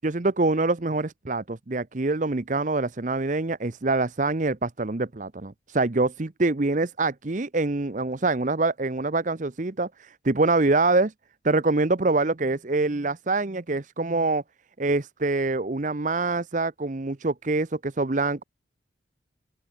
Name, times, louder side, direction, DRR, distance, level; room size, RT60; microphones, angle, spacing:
voice 1, 0.0-11.1 11.4-14.4 14.8-18.4, right 3 dB, 40° right, 0.8 m, -25 dB
open air
head